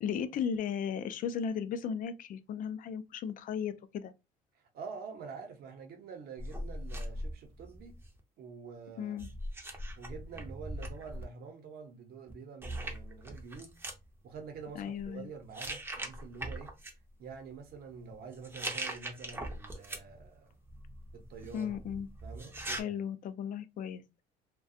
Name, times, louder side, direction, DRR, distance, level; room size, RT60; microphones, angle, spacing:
voice 1, 0.0-4.1 9.0-9.3 14.8-15.3 21.5-22.1 22.7-24.0, left 7 dB, 55° left, 0.4 m, -36 dB
voice 2, 4.5-8.0 8.4-9.3 10.0-13.7 14.2-16.7 17.2-20.6 21.1-23.0, right 5 dB, 65° right, 0.7 m, -47 dB
sound 1, 6.4-8.2 9.2-11.2 12.3-12.4 12.6-14.0 14.8-15.1 15.5-16.9 18.3-20.3 20.6-22.8, right 1 dB, 15° right, 0.5 m, -41 dB
2.3 x 2.2 x 2.6 m
cardioid pair, 110°, 17 cm